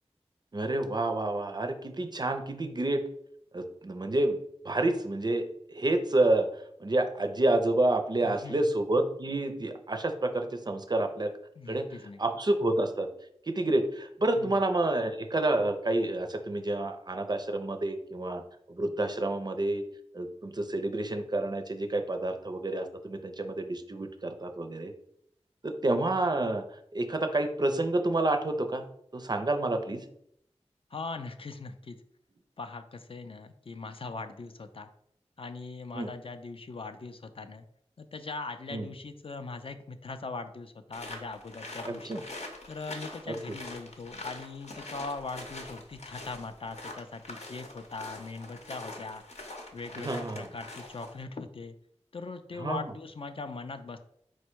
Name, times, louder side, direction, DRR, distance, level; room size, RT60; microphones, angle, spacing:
voice 1, 0.5-3.0 3.5-4.4 4.6-6.5 6.8-11.3 11.7-11.9 12.2-13.1 13.5-18.4 18.7-19.8 20.1-24.9 25.6-26.6 26.9-28.9 29.1-30.0 35.9-36.1 38.7-38.8 41.8-42.2 43.3-43.4 50.0-50.5 52.6-52.8, right 2 dB, 40° right, 6 dB, 0.4 m, -29 dB
voice 2, 8.2-8.6 11.6-12.2 14.4-14.6 30.9-32.0 32.6-34.9 35.4-37.7 38.0-42.2 42.7-49.2 49.7-51.8 52.1-54.0, left 3 dB, 50° left, 8 dB, 0.4 m, -40 dB
sound 1, 40.9-51.2, left 2 dB, 70° left, 0.7 m, -44 dB
4.3 x 2.2 x 4.4 m, 0.70 s
wide cardioid pair, 60°, 12 cm